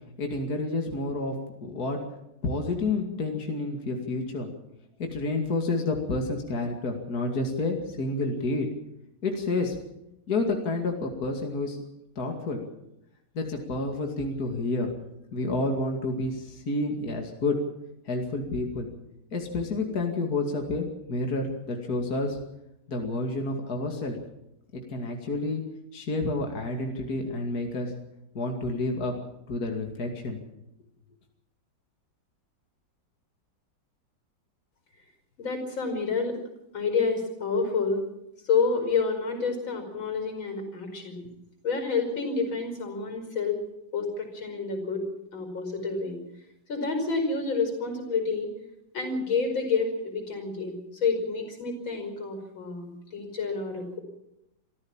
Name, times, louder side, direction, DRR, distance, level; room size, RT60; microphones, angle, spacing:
voice 1, 0.2-2.0 2.4-4.5 5.0-8.7 9.2-9.7 10.3-11.8 12.2-12.6 13.3-14.9 15.3-17.6 18.1-18.9 19.3-22.4 22.9-24.2 24.9-25.6 25.9-27.9 28.3-29.1 29.5-30.4, left 2 dB, 50° left, 2 dB, 2.9 m, -29 dB
voice 2, 35.4-36.4 36.7-38.1 38.4-41.3 41.6-43.6 43.9-45.1 45.3-46.2 46.7-48.5 48.9-54.0, left 4 dB, 90° left, 6 dB, 6.0 m, -29 dB
26.0 x 14.5 x 7.4 m, 0.84 s
omnidirectional pair, 2.1 m